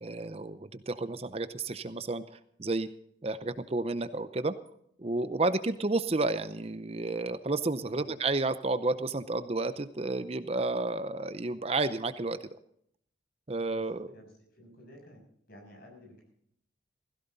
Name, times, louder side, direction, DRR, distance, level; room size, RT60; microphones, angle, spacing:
voice 1, 0.0-2.9 3.2-4.5 5.0-12.4 13.5-14.1, right 2 dB, 30° right, 12 dB, 0.6 m, -31 dB
voice 2, 13.7-15.2 15.5-16.3, equal, 50° left, 2 dB, 6.9 m, -53 dB
16.5 x 16.0 x 4.0 m, 0.69 s
head